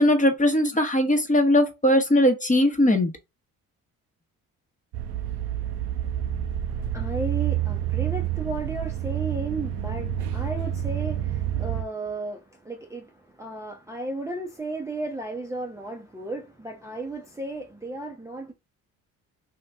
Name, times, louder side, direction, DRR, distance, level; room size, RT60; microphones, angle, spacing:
voice 1, 0.0-3.1, left 1 dB, 20° left, 1.0 m, -20 dB
sound 1, 4.9-11.8, right 11 dB, 80° right, 0.6 m, -28 dB
voice 2, 6.6-18.5, right 2 dB, 5° right, 0.7 m, -34 dB
2.8 x 2.6 x 3.4 m
supercardioid pair, 60°, 39 cm